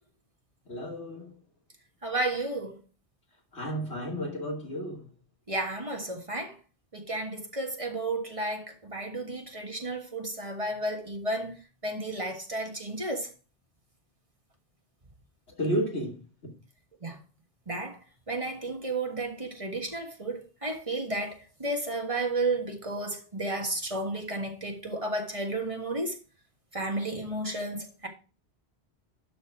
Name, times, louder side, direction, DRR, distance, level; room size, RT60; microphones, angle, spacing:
voice 1, 0.7-1.3 3.5-5.1 15.6-16.1, equal, 85° left, 3.0 m, -32 dB
voice 2, 2.0-2.8 5.5-6.6 6.9-11.5 11.8-13.3 17.0-17.2 17.7-18.0 18.3-26.1 26.7-28.1, right 2 dB, 30° right, 1.6 m, -32 dB
12.0 x 4.2 x 4.9 m
omnidirectional pair, 1.1 m